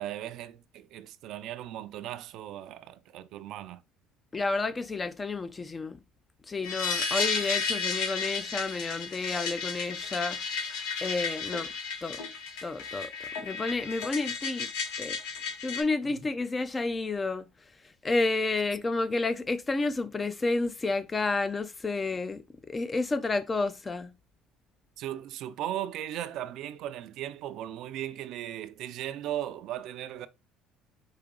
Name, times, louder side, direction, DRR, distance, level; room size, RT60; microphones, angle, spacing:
voice 1, 0.0-3.8 16.1-16.2 25.0-30.3, right 12 dB, 70° right, 0.4 m, -37 dB
voice 2, 4.3-6.0 6.5-10.4 11.0-11.7 12.0-12.2 12.6-13.1 13.4-14.7 15.0-15.2 15.6-17.5 18.0-22.4 22.7-24.1, left 3 dB, 25° left, 0.4 m, -30 dB
sound 1, 6.6-15.8, left 5 dB, 80° left, 1.1 m, -33 dB
4.9 x 2.8 x 3.7 m
supercardioid pair, 95°, 0 cm